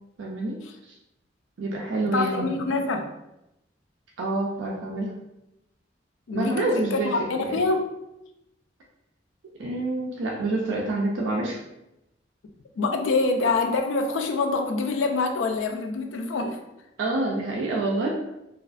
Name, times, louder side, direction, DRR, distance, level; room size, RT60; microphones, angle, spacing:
voice 1, 0.2-0.6 0.8-0.9 1.6-2.7 4.2-5.1 6.3-7.1 7.4-7.6 9.6-11.6 17.0-18.1, right 2 dB, 85° right, -2 dB, 0.4 m, -27 dB
voice 2, 2.0-3.1 6.3-7.9 12.8-16.6, left 3 dB, 90° left, 4 dB, 0.3 m, -25 dB
2.4 x 2.3 x 2.4 m, 0.89 s
head